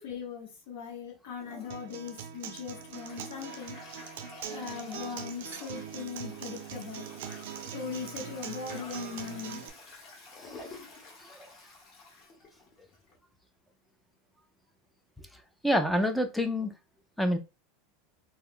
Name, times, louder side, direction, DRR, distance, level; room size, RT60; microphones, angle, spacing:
voice 1, 0.0-3.8 4.5-7.1 7.7-9.6, left 6 dB, 75° left, -1 dB, 1.0 m, -40 dB
Toilet flush, 1.4-13.2, left 3 dB, 30° left, 0.9 m, -50 dB
Acoustic guitar, 1.7-9.7, right 8 dB, 75° right, 0.4 m, -42 dB
voice 2, 15.6-16.7 17.2-17.4, equal, ahead, 6 dB, 0.3 m, -26 dB
2.4 x 2.3 x 3.5 m, 0.27 s
supercardioid pair, 175°, 0 cm